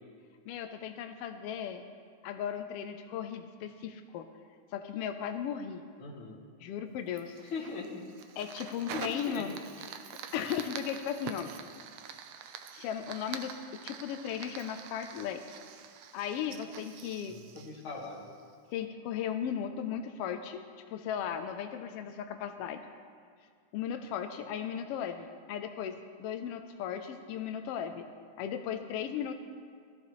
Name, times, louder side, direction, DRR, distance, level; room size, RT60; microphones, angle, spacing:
voice 1, 0.5-1.8 2.2-4.3 4.7-5.8 6.6-7.4 8.4-9.6 10.3-11.5 12.7-15.4 16.1-17.4 18.7-22.8 23.7-28.0 28.4-29.3, left 8 dB, 80° left, 7 dB, 1.3 m, -36 dB
voice 2, 6.0-6.4 7.4-8.0 8.6-9.5 17.3-18.3, left 4 dB, 50° left, -2 dB, 2.2 m, -41 dB
Fire, 7.2-18.5, right 8 dB, 75° right, 1.6 m, -46 dB
18.0 x 14.0 x 3.1 m, 2.1 s
omnidirectional pair, 3.3 m